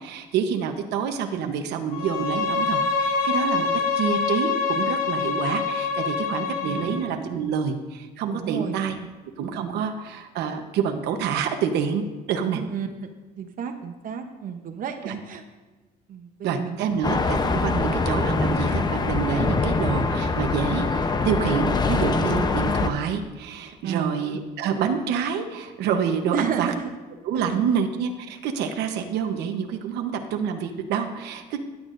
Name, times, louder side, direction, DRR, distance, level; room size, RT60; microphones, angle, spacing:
voice 1, 0.0-3.7 4.0-9.0 9.4-12.6 15.0-15.1 16.4-26.7 27.2-31.6, right 7 dB, 80° right, 5 dB, 1.0 m, -27 dB
Bowed string instrument, 1.9-7.1, left 4 dB, 55° left, 1.4 m, -25 dB
voice 2, 6.5-7.0 8.3-9.1 9.6-9.7 12.5-13.1 13.4-15.4 16.1-17.2 23.8-24.1 26.3-26.8 27.3-27.7, right 7 dB, 55° right, 6 dB, 0.9 m, -32 dB
sound 1, 17.0-22.9, left 3 dB, 25° left, 0.8 m, -24 dB
15.5 x 10.5 x 2.6 m, 1.2 s
cardioid pair, 110°, 17 cm